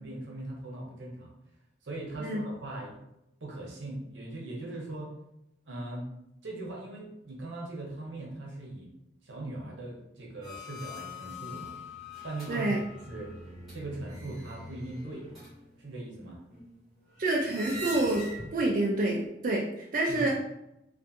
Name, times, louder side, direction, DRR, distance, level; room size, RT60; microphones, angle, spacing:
voice 1, 0.0-1.3 1.8-3.0 3.4-5.1 5.7-6.1 6.4-8.9 9.2-11.7 12.2-13.3 13.7-15.3 15.8-16.4 20.1-20.3, right 2 dB, 85° right, -1 dB, 0.8 m, -40 dB
sound 1, 10.4-18.8 19.2-19.3, left 1 dB, ahead, 1.1 m, -43 dB
voice 2, 12.5-12.8 17.2-19.7 19.9-20.4, right 2 dB, 45° right, -2 dB, 0.3 m, -27 dB
2.5 x 2.5 x 2.5 m, 0.84 s
head